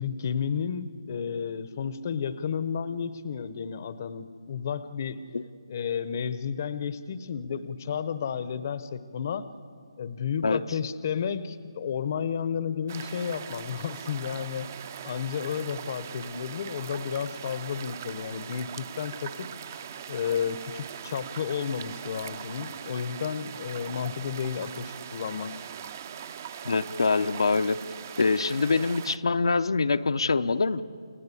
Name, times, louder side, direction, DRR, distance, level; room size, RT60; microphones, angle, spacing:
voice 1, 0.0-5.2 5.7-9.5 10.0-14.7 15.0-19.5 20.1-25.6 26.5-26.6, left 7 dB, 35° left, 14 dB, 0.7 m, -32 dB
sound 1, 12.9-29.2, right 8 dB, 30° right, 0.6 m, -41 dB
voice 2, 26.6-27.8 28.2-30.8, left 4 dB, 75° left, 8 dB, 0.8 m, -24 dB
29.5 x 17.0 x 8.4 m, 2.4 s
hypercardioid pair, 170°, 3 cm